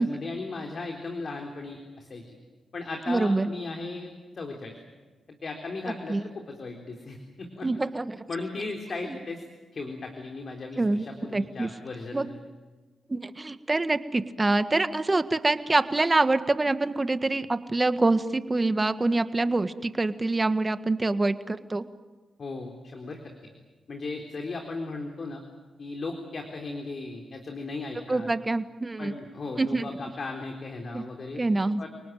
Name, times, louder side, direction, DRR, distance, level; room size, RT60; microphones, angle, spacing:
voice 1, 0.0-2.4 2.7-4.7 5.4-7.7 8.3-9.4 9.7-12.4 22.4-23.2 23.9-25.4 25.8-28.3 29.0-31.4 31.8-31.9, left 3 dB, 55° left, 2 dB, 3.8 m, -36 dB
voice 2, 3.1-3.5 6.1-6.2 7.6-8.2 10.8-11.0 11.3-11.7 12.1-12.2 13.1-21.8 28.1-29.1 29.6-29.9 30.9-31.0 31.4-31.8, right 2 dB, 25° right, 11 dB, 1.6 m, -25 dB
29.5 x 19.0 x 9.3 m, 1.3 s
supercardioid pair, 50°, 0 cm